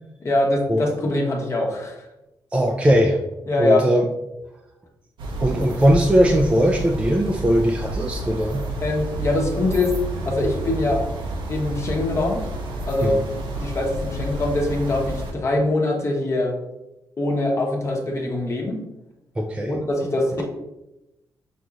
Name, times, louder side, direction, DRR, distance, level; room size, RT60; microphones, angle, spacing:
voice 1, 0.2-2.0 3.5-3.8 8.8-9.9 10.2-11.0 11.5-12.4 12.8-13.2 13.6-16.5 17.2-18.8 19.7-20.4, left 2 dB, 35° left, 0 dB, 0.9 m, -23 dB
voice 2, 2.5-3.2 3.6-4.0 5.4-8.6 13.0-13.2 13.6-13.8 19.4-19.8, equal, 15° right, 0 dB, 0.4 m, -19 dB
sound 1, 5.2-15.3, right 1 dB, 80° right, 0.8 m, -30 dB
6.1 x 2.9 x 2.4 m, 0.94 s
cardioid pair, 110°, 8 cm